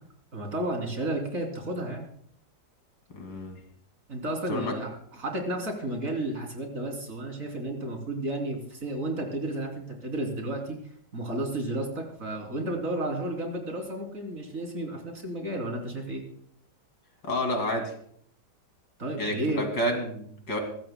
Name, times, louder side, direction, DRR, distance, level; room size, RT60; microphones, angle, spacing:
voice 1, 0.3-2.1 4.1-10.8 11.1-16.2 19.0-19.7, right 1 dB, 50° right, 1 dB, 3.7 m, -32 dB
voice 2, 3.1-3.6 4.5-4.7 17.2-17.9 19.2-20.6, equal, 85° left, 4 dB, 3.2 m, -30 dB
23.0 x 16.0 x 2.2 m, 0.63 s
omnidirectional pair, 1.8 m